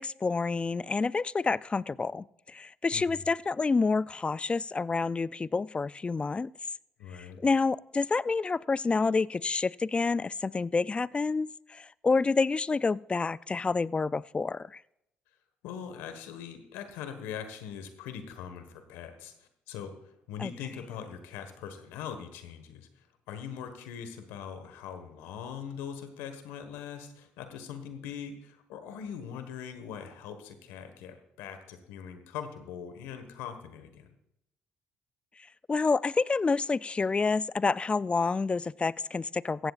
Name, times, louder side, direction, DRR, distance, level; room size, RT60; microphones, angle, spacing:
voice 1, 0.0-6.5 7.4-14.8 20.4-20.5 35.7-39.7, left 4 dB, 25° left, 0.3 m, -28 dB
voice 2, 7.0-7.4 15.6-20.0 20.3-22.9 23.3-34.1, left 8 dB, 85° left, 1.5 m, -41 dB
16.0 x 15.0 x 2.5 m
supercardioid pair, 65°, 4 cm